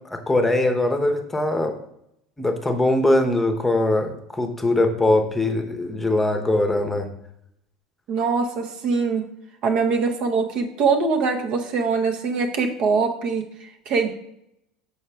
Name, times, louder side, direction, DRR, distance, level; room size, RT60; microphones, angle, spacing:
voice 1, 0.0-1.7 2.4-7.1, left 2 dB, 10° left, 5 dB, 0.8 m, -21 dB
voice 2, 8.1-9.2 9.6-14.1, right 4 dB, 50° right, 4 dB, 0.7 m, -23 dB
6.5 x 4.8 x 3.3 m, 0.78 s
figure-of-eight pair, 70°, 2 cm